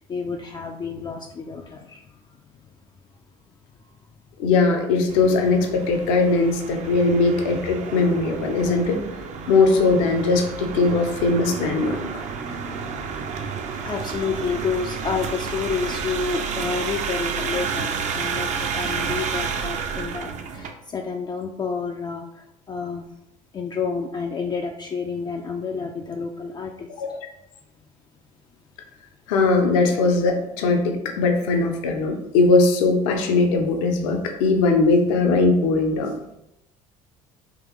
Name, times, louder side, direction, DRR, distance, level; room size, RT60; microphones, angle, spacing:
voice 1, 0.1-2.0 6.9-7.0 12.4-12.6 13.1-13.3 13.8-22.2 22.7-23.1 23.5-26.9, left 5 dB, 25° left, 2 dB, 0.3 m, -29 dB
voice 2, 4.4-9.0 9.4-12.0 27.0-27.2 29.3-36.1, left 3 dB, 65° left, 3 dB, 0.6 m, -20 dB
sound 1, 5.1-20.7, right 6 dB, 40° right, 0.5 m, -30 dB
3.7 x 2.9 x 3.0 m, 0.82 s
figure-of-eight pair, 60°, 18 cm